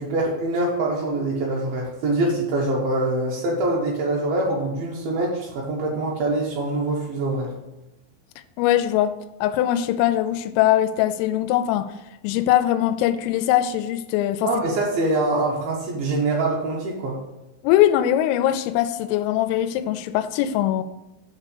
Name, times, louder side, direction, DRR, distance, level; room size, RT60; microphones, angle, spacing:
voice 1, 0.0-7.5 14.4-17.2, right 2 dB, 85° right, 2.1 m, -24 dB
voice 2, 8.6-9.1 9.4-11.9 12.2-14.5 17.6-20.8, left 12 dB, 85° left, 3.1 m, -21 dB
8.6 x 3.6 x 6.6 m
omnidirectional pair, 6.0 m